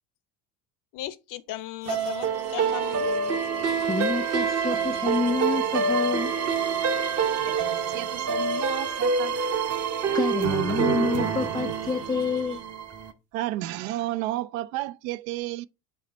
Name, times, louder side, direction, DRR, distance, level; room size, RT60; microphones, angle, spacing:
voice 1, 0.9-3.1, left 13 dB, 45° left, 0.7 m, -36 dB
sound 1, 1.8-12.6, right 4 dB, 85° right, 2.0 m, -49 dB
sound 2, 1.9-13.1, right 5 dB, 35° right, 0.9 m, -26 dB
voice 2, 3.9-6.3 10.1-12.6, left 4 dB, 10° left, 0.3 m, -28 dB
voice 3, 7.5-9.4 13.3-15.7, right 15 dB, 60° right, 0.5 m, -32 dB
8.1 x 3.3 x 4.0 m
hypercardioid pair, 65°, 46 cm